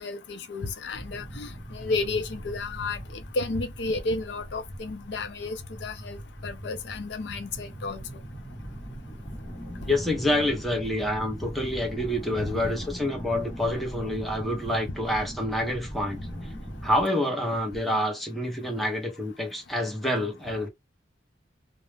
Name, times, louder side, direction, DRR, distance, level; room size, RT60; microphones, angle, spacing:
voice 1, 0.0-3.0 3.4-6.2 6.4-8.0 10.3-10.5 12.4-12.5, left 3 dB, 65° left, 0.5 m, -32 dB
sound 1, 0.9-17.0, equal, 20° left, 1.0 m, -40 dB
voice 2, 9.9-16.2 16.8-20.7, left 1 dB, ahead, 0.7 m, -27 dB
2.3 x 2.0 x 3.2 m
head